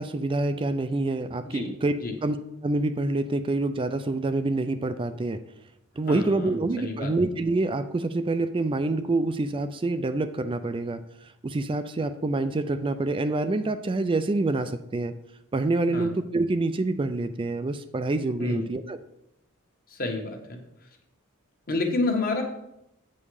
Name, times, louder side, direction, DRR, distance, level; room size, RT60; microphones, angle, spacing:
voice 1, 0.0-1.9 2.2-2.4 2.6-5.4 6.0-11.0 11.4-15.1 15.5-19.0, right 2 dB, 25° right, 10 dB, 0.4 m, -26 dB
voice 2, 6.1-6.5 6.8-7.1 15.9-16.1 18.4-18.7 19.9-20.6 21.7-22.4, left 3 dB, 40° left, 3 dB, 1.3 m, -29 dB
8.5 x 5.4 x 4.8 m, 0.81 s
head